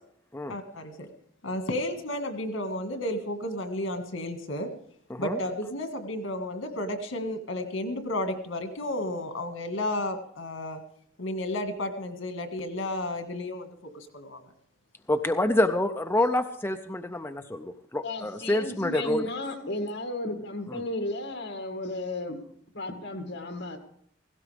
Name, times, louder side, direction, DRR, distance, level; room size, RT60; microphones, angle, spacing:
voice 1, 0.5-1.1 1.4-4.7 5.2-10.8 11.2-13.7 13.9-14.4, left 1 dB, 85° left, 6 dB, 1.9 m, -32 dB
voice 2, 15.1-19.3 20.7-20.8, left 1 dB, 10° left, 6 dB, 0.5 m, -27 dB
voice 3, 18.0-22.4 22.7-23.8, left 2 dB, 60° left, 4 dB, 2.2 m, -34 dB
17.5 x 16.0 x 3.5 m, 0.64 s
head